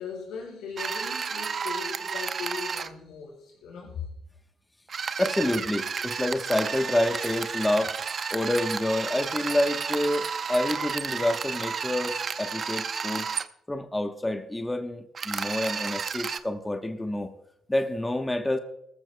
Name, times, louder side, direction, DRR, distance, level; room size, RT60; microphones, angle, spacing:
voice 1, 0.0-4.1, left 6 dB, 90° left, 0 dB, 5.3 m, -38 dB
sound 1, 0.8-2.9 4.9-13.5 15.1-16.4, right 6 dB, 45° right, 0.6 m, -32 dB
voice 2, 5.2-8.0 8.3-13.3 13.7-17.3 17.7-18.6, left 1 dB, 10° left, 6 dB, 1.0 m, -28 dB
18.5 x 14.5 x 2.2 m, 0.80 s
cardioid pair, 90°, 0 cm